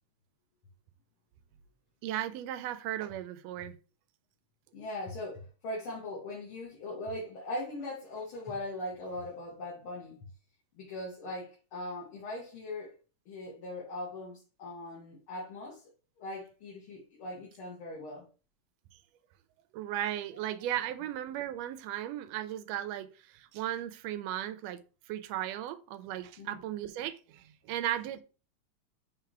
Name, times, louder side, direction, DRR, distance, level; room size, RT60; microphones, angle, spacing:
voice 1, 2.0-3.7 19.7-24.8 25.1-28.2, right 12 dB, 80° right, 1.6 m, -36 dB
voice 2, 4.7-10.3 10.8-12.9 13.3-15.8 16.2-18.3 26.4-26.6, left 1 dB, 50° left, 2.1 m, -40 dB
5.9 x 3.5 x 4.6 m
omnidirectional pair, 3.3 m